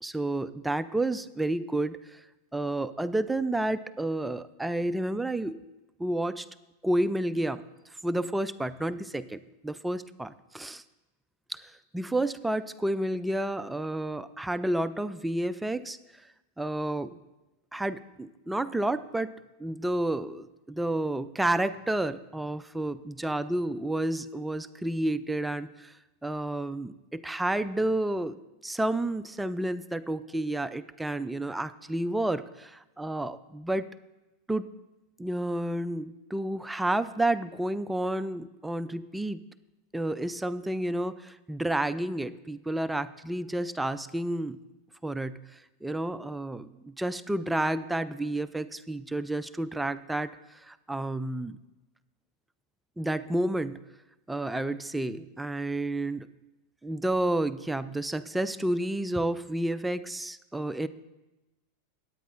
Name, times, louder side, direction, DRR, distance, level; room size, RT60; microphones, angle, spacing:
voice 1, 0.0-2.2 2.5-5.6 6.0-6.5 6.8-7.6 8.0-10.8 11.5-11.6 11.9-16.2 16.6-17.2 17.7-26.0 26.2-28.4 28.6-33.9 34.5-34.7 35.2-39.4 39.9-44.6 45.0-51.6 53.0-53.8 54.3-56.3 56.8-60.9, right 1 dB, 5° right, 11 dB, 0.3 m, -30 dB
18.5 x 9.1 x 2.5 m, 0.99 s
supercardioid pair, 130°, 0 cm